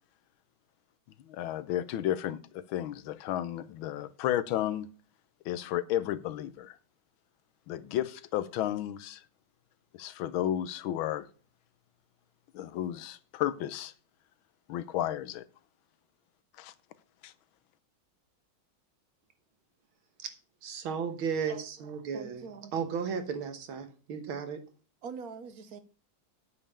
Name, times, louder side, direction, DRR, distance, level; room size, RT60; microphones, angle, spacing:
voice 1, 1.3-4.9 5.4-6.8 7.7-9.2 9.9-11.3 12.5-13.9 14.7-15.4 16.6-16.7 17.2-17.3, left 12 dB, 90° left, 1.5 m, -32 dB
voice 2, 20.6-24.6, right 6 dB, 90° right, 2.1 m, -35 dB
voice 3, 22.1-22.7 25.0-25.8, right 5 dB, 55° right, 1.1 m, -43 dB
8.7 x 5.5 x 6.9 m
omnidirectional pair, 2.2 m